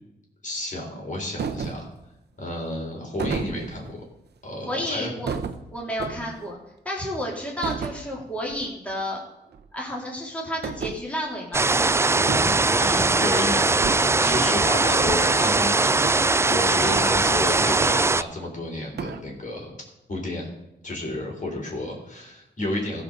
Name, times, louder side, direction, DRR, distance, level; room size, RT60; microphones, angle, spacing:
voice 1, 0.4-1.9 2.4-4.0 4.4-5.1 6.2-6.3 12.3-19.8 20.1-20.5 20.8-23.0, left 1 dB, 45° left, 0 dB, 4.2 m, -31 dB
sound 1, 1.4-1.9 3.2-3.9 5.3-6.5 7.6-8.0 8.4-8.7 8.9-9.0 9.5-9.7 10.6-11.0 12.2-12.7 13.7-14.2 15.0-15.3 16.0-16.2 16.9-17.3 17.8-18.5 19.0-19.2, right 6 dB, 65° right, 1.0 m, -32 dB
voice 2, 4.7-5.4 5.7-6.6 6.9-9.2 9.7-12.2 13.2-13.6, equal, 5° left, -3 dB, 3.5 m, -31 dB
sound 2, 11.5-18.2, right 3 dB, 15° right, 0.3 m, -20 dB
14.5 x 5.4 x 6.8 m, 0.89 s
cardioid pair, 55°, 18 cm